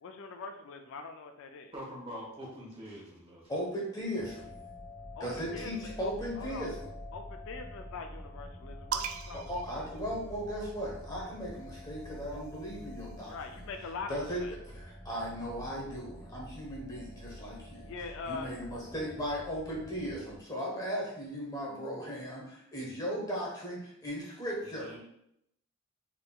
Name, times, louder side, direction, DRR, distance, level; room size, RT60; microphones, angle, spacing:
voice 1, 0.0-1.7 5.2-6.7 7.1-9.7 13.3-14.5 17.8-18.5, left 4 dB, 60° left, 5 dB, 0.4 m, -43 dB
voice 2, 1.7-3.6 24.7-25.0, equal, 25° right, -4 dB, 1.3 m, -44 dB
voice 3, 3.5-4.5 5.2-6.8 9.3-13.3 14.1-17.9 18.3-24.9, equal, 15° left, -3 dB, 0.9 m, -37 dB
sound 1, 4.2-20.4, left 1 dB, ahead, 1.3 m, -47 dB
sound 2, 8.9-10.7 11.8-13.5, right 8 dB, 70° right, 0.3 m, -41 dB
4.2 x 3.6 x 2.3 m, 0.76 s
head